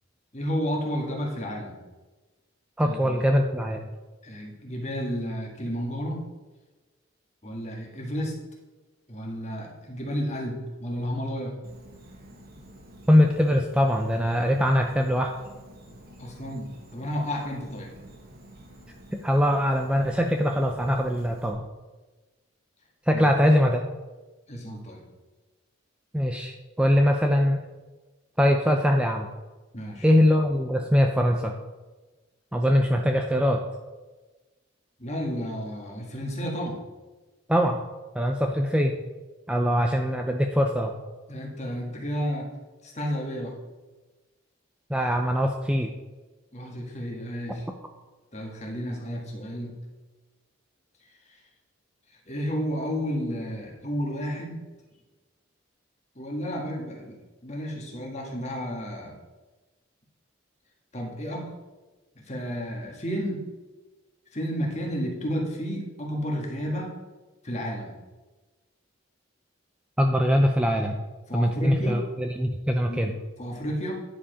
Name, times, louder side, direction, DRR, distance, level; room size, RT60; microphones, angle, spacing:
voice 1, 0.3-1.8 2.8-3.2 4.2-6.3 7.4-8.4 9.1-11.6 16.2-17.9 23.1-23.2 24.5-25.0 29.7-30.1 35.0-36.8 41.3-42.5 42.8-43.6 46.5-47.7 48.3-49.8 51.3-51.4 52.1-54.6 56.1-57.2 57.4-59.1 60.9-61.5 62.1-63.5 64.3-66.9 67.4-68.0 71.3-72.0 72.8-73.9, equal, 35° left, -1 dB, 1.6 m, -32 dB
voice 2, 2.8-3.9 13.1-15.3 19.2-21.6 23.1-23.8 26.1-27.6 28.4-29.3 30.0-31.5 32.5-33.6 37.5-37.8 38.1-38.9 39.5-40.9 44.9-45.9 70.0-71.0 71.3-73.1, equal, 5° right, 3 dB, 0.4 m, -22 dB
Insect, 11.6-21.5, right 1 dB, 45° right, 1.3 m, -49 dB
9.9 x 5.0 x 5.0 m, 1.2 s
head